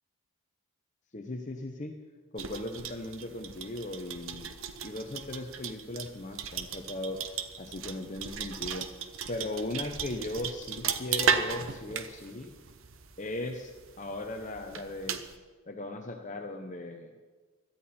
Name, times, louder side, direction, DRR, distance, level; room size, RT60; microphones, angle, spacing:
voice 1, 1.1-2.0 2.3-4.5 4.8-7.2 7.6-8.9 9.3-12.6 13.2-15.2 15.7-17.1, left 2 dB, 35° left, 4 dB, 0.8 m, -38 dB
sound 1, 2.4-15.4, right 6 dB, 65° right, 0.9 m, -36 dB
17.5 x 13.0 x 4.3 m, 1.4 s
head